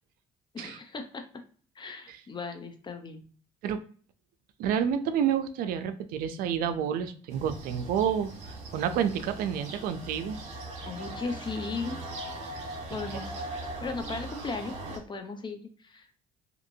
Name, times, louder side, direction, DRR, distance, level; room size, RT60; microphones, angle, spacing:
voice 1, 0.5-1.2 1.8-3.2 10.8-12.0 12.9-13.3 13.8-16.2, left 4 dB, 30° left, 6 dB, 0.7 m, -37 dB
voice 2, 4.6-10.4 13.1-13.2, right 8 dB, 70° right, 10 dB, 0.4 m, -29 dB
sound 1, 7.3-15.0, right 2 dB, 45° right, 1.2 m, -40 dB
2.8 x 2.6 x 2.6 m, 0.44 s
supercardioid pair, 75°, 16 cm